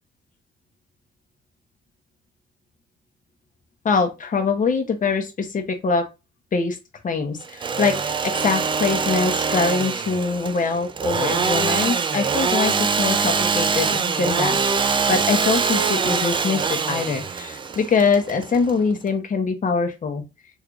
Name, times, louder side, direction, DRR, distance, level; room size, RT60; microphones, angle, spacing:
voice 1, 3.8-6.0 6.5-6.8 7.0-20.2, left 4 dB, 40° left, 6 dB, 0.9 m, -23 dB
Engine / Sawing, 7.4-19.1, right 5 dB, 25° right, 0.3 m, -23 dB
3.3 x 3.2 x 2.5 m, 0.25 s
cardioid pair, 90°, 20 cm